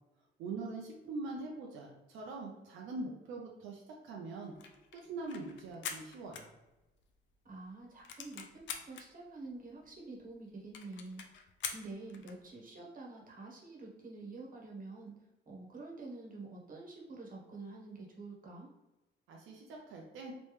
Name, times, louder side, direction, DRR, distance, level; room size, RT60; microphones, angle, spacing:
voice 1, 0.4-4.5 4.9-6.5 19.3-20.3, right 3 dB, 90° right, -1 dB, 0.7 m, -43 dB
sound 1, 4.4-7.1 7.5-7.6 7.8-9.1 9.7-9.8 9.9-10.0 10.3-10.4 10.7-12.4, left 7 dB, 70° left, 0.5 m, -44 dB
voice 2, 7.4-8.6 8.9-11.2 11.7-15.1 15.5-18.7, right 3 dB, 45° right, -2 dB, 1.2 m, -47 dB
3.3 x 3.0 x 3.2 m, 1.0 s
cardioid pair, 90°, 20 cm